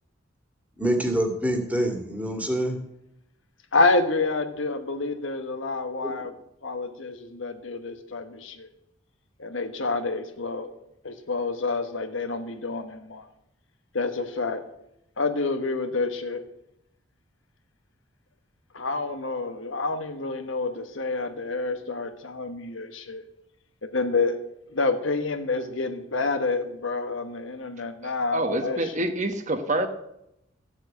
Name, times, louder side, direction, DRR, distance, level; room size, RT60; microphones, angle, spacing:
voice 1, 0.8-2.8 6.0-6.1, right 1 dB, 5° right, 3 dB, 2.0 m, -26 dB
voice 2, 3.7-6.4 6.6-8.7 9.4-10.7 11.0-13.2 13.9-14.6 15.2-16.4 18.7-23.2 23.9-24.4 24.7-29.1, left 3 dB, 70° left, 8 dB, 1.3 m, -28 dB
voice 3, 28.0-29.9, right 2 dB, 40° right, 8 dB, 1.1 m, -27 dB
14.0 x 7.3 x 8.4 m, 0.82 s
head